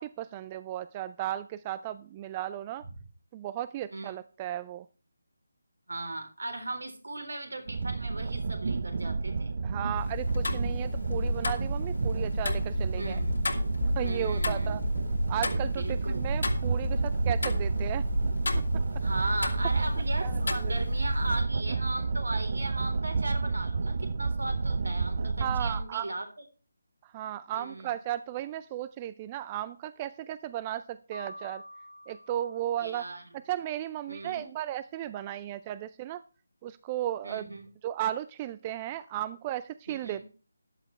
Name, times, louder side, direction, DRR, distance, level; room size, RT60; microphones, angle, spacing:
voice 1, 0.0-2.8 3.3-4.9 9.6-13.2 14.0-14.8 15.3-18.0 20.2-20.7 25.4-26.1 27.0-31.6 32.1-33.0 33.5-36.2 36.6-37.5 37.8-40.2, right 12 dB, 20° right, 15 dB, 0.4 m, -35 dB
voice 2, 5.9-9.5 13.0-13.5 14.0-14.8 15.8-16.2 19.0-26.2 27.5-28.0 32.8-33.2 34.1-34.5 37.2-37.7 39.9-40.2, right 2 dB, 70° right, 6 dB, 3.8 m, -37 dB
sound 1, 7.7-25.8, right 4 dB, 50° right, 0.8 m, -30 dB
Tick-tock, 10.0-21.4, left 2 dB, 60° left, 2.2 m, -32 dB
Piano, 31.1-33.3, equal, 90° left, 2.3 m, -47 dB
14.0 x 11.0 x 3.3 m, 0.36 s
figure-of-eight pair, 155°, 0 cm